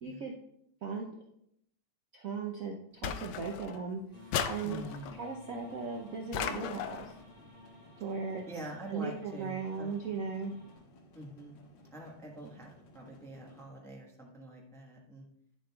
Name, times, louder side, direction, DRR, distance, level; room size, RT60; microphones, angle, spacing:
voice 1, 0.0-0.3 0.8-1.1 2.1-4.0 4.5-4.8 5.2-7.1 8.0-8.4 8.9-10.5, right 5 dB, 85° right, 0 dB, 0.7 m, -37 dB
sound 1, 3.0-3.8 4.3-5.2 6.3-7.1, left 8 dB, 85° left, 0.9 m, -36 dB
sound 2, 4.1-10.8, left 2 dB, 35° right, 2.6 m, -55 dB
voice 2, 4.6-5.1 8.5-9.9 11.1-11.6 11.9-15.3, right 1 dB, ahead, -1 dB, 0.6 m, -46 dB
sound 3, 5.6-13.6, left 1 dB, 60° left, 1.8 m, -58 dB
10.0 x 7.5 x 2.3 m, 0.75 s
omnidirectional pair, 2.4 m